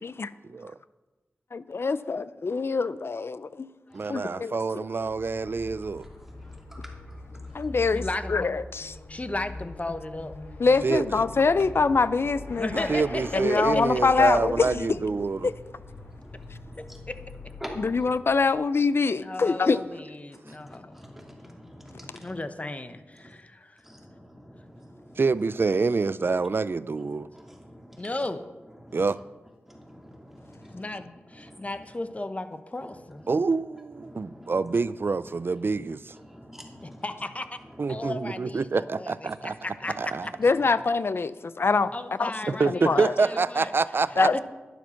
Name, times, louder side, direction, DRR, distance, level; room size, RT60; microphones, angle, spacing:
voice 1, 1.7-3.7 4.1-4.9 7.5-9.0 10.6-12.9 13.3-15.0 15.4-15.5 17.8-19.8 40.4-41.9 42.2-42.3 42.7-43.1 44.2-44.4, left 4 dB, 60° left, 0.5 m, -24 dB
voice 2, 3.9-6.0 10.8-11.1 12.9-15.5 25.2-27.3 28.9-29.2 33.3-36.1 37.8-39.5 40.0-40.3 42.6-44.4, right 4 dB, 55° right, 0.4 m, -26 dB
Motorcycle / Accelerating revving vroom, 4.9-18.7, left 2 dB, 90° left, 2.9 m, -42 dB
voice 3, 6.0-7.5 16.0-17.0 17.6-17.9 20.5-22.4 23.2-23.3 23.8-25.2 27.0-28.1 28.8-29.0 29.7-31.0 31.3-31.6 34.0-34.6 36.1-37.0 37.9-38.0, equal, 5° right, 2.6 m, -47 dB
voice 4, 7.9-8.5 9.1-10.3 12.6-13.8 19.2-21.1 22.2-23.8 28.0-28.5 30.7-33.2 36.8-37.5 37.9-40.3 41.9-43.7 44.3-44.4, left 2 dB, 30° left, 1.0 m, -35 dB
11.5 x 10.0 x 5.8 m
wide cardioid pair, 60°, 5 cm